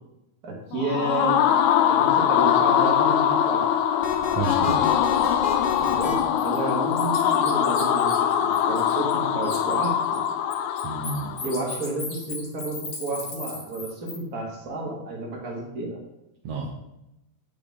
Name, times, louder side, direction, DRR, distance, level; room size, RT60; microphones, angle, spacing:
voice 1, 0.4-1.4 1.9-3.6 5.8-8.1 8.4-10.2 11.4-16.0, right 2 dB, 30° right, -1 dB, 2.5 m, -31 dB
sound 1, 0.7-11.6, left 9 dB, 80° left, 2.0 m, -22 dB
sound 2, 4.0-6.1, left 5 dB, 40° left, 1.6 m, -31 dB
voice 2, 4.3-4.9 10.8-11.3 16.4-16.7, right 4 dB, 65° right, -2 dB, 2.1 m, -30 dB
Bird, 5.1-5.3 5.7-9.2 9.4-14.2, left 4 dB, 55° left, 2.9 m, -37 dB
9.4 x 8.5 x 3.7 m, 0.88 s
omnidirectional pair, 3.3 m